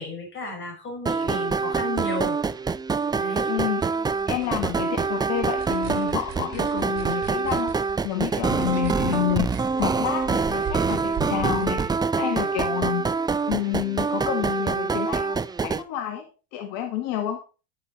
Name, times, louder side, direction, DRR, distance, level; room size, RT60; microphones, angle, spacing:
voice 1, 0.0-2.4 3.1-3.5, left 1 dB, 35° left, 3 dB, 5.5 m, -33 dB
sound 1, 1.1-15.8, right 4 dB, 10° right, 0.5 m, -25 dB
voice 2, 3.4-3.8 4.3-7.7 8.0-9.5 9.8-13.0 13.5-16.2 16.5-17.4, left 12 dB, 65° left, 5 dB, 1.6 m, -29 dB
sound 2, 3.6-12.5, right 6 dB, 45° right, 2.8 m, -41 dB
10.0 x 7.5 x 4.1 m, 0.33 s
supercardioid pair, 95°, 36 cm